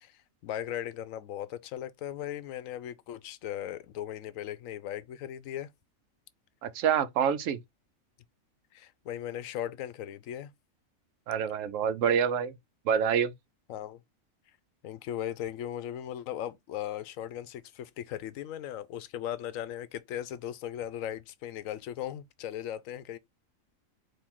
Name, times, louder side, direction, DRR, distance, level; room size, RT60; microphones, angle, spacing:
voice 1, 0.0-5.7 8.7-10.5 13.7-14.0 14.8-23.2, left 11 dB, 80° left, 1.0 m, -38 dB
voice 2, 6.6-7.6 11.3-12.5 12.9-13.3, right 8 dB, 75° right, 0.9 m, -26 dB
4.4 x 2.8 x 3.7 m
omnidirectional pair, 1.4 m